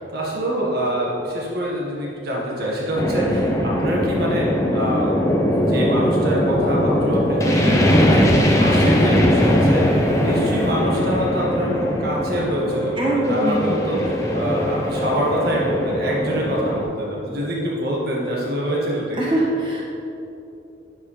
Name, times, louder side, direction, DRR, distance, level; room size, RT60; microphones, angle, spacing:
voice 1, 0.1-5.1 5.5-19.4, equal, 50° right, -4 dB, 1.7 m, -25 dB
sound 1, 3.0-16.8, equal, 15° left, 0.8 m, -20 dB
voice 2, 13.0-13.9 19.2-19.9, right 1 dB, 25° right, -5 dB, 1.7 m, -22 dB
10.0 x 7.4 x 3.4 m, 2.9 s
head